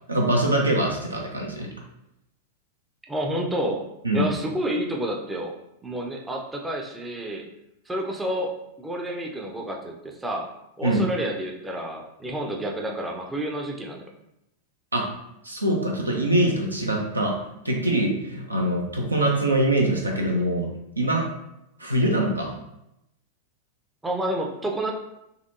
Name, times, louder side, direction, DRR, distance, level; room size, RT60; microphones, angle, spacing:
voice 1, 0.1-1.7 4.0-4.3 10.8-11.0 14.9-15.1 15.4-20.7 21.0-21.3 21.8-22.5, right 1 dB, 80° right, 0 dB, 0.6 m, -23 dB
voice 2, 3.1-3.8 4.1-5.5 5.8-7.4 7.9-8.5 8.8-10.5 10.8-14.0 24.0-24.9, right 1 dB, 10° right, 1 dB, 0.5 m, -29 dB
4.2 x 2.5 x 2.6 m, 0.85 s
figure-of-eight pair, 90°, 0 cm